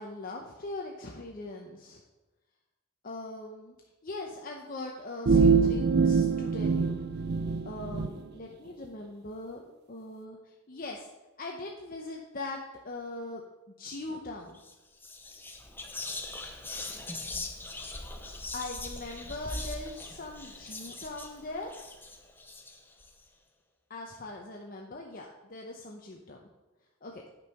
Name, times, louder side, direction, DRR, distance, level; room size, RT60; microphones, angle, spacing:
voice 1, 0.0-2.0 3.0-3.7 4.0-7.0 7.6-11.1 11.4-12.6 12.8-13.4 13.8-14.6 18.5-21.7 23.9-26.4 27.0-27.2, left 2 dB, 45° left, 0 dB, 0.8 m, -41 dB
sound 1, 5.3-8.1, right 5 dB, 50° right, 0.5 m, -24 dB
Whispering, 14.5-14.7 15.0-23.1, left 2 dB, 10° left, 0.7 m, -41 dB
9.8 x 5.4 x 5.7 m, 1.1 s
head